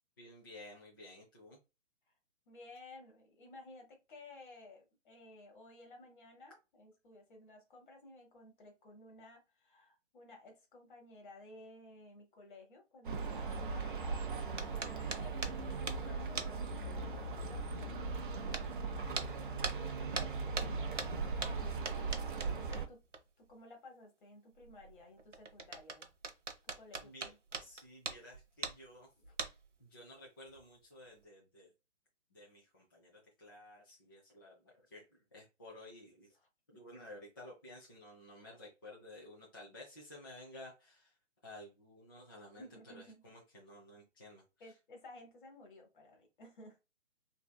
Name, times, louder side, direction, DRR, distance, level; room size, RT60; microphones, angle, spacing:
voice 1, 0.2-1.6 27.0-27.3 27.6-29.1 29.8-31.7 32.3-36.3 36.7-41.1 41.4-44.4, left 1 dB, 20° left, -5 dB, 0.5 m, -54 dB
voice 2, 2.5-14.2 14.7-23.0 23.4-26.1 26.7-27.6 29.2-29.3 36.4-36.5 42.6-43.2 44.6-46.8, left 2 dB, 40° left, 2 dB, 1.3 m, -56 dB
sound 1, 13.0-22.9, right 4 dB, 45° right, 0.6 m, -39 dB
sound 2, 14.6-16.1 16.4-16.7 17.1-17.2 18.5-18.7 19.1-19.3 19.6-23.2 23.5-23.6 24.5-28.9 29.2-29.8 30.5-30.6 31.1-31.2, right 4 dB, 80° right, 0.8 m, -42 dB
3.3 x 2.7 x 2.2 m, 0.27 s
figure-of-eight pair, 135°, 37 cm